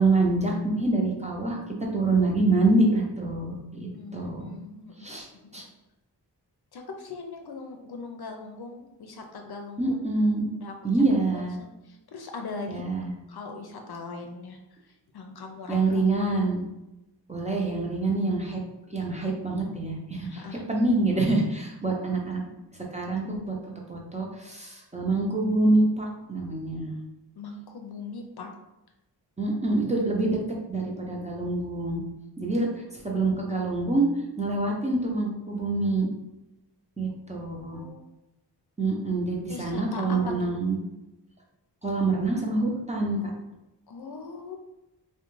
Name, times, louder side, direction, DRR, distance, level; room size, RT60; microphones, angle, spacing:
voice 1, 0.0-1.6 1.9-4.5 5.0-5.3 5.5-5.6 9.8-10.5 10.8-11.6 12.7-13.1 15.7-16.6 17.3-18.6 18.9-20.4 20.7-22.4 22.9-23.5 23.9-27.0 29.4-30.4 30.7-32.0 32.4-32.7 33.0-34.1 34.4-36.1 37.0-37.8 38.8-40.8 41.8-43.3, right 2 dB, 15° right, -2 dB, 0.5 m, -26 dB
voice 2, 3.9-4.9 5.4-5.5 6.7-10.0 10.6-10.7 11.3-12.9 13.3-14.6 15.1-15.8 20.2-20.6 27.4-28.5 37.5-38.0 39.5-40.5 43.9-44.5, left 4 dB, 60° left, 3 dB, 0.5 m, -40 dB
2.3 x 2.2 x 3.0 m, 0.95 s
wide cardioid pair, 50°, 42 cm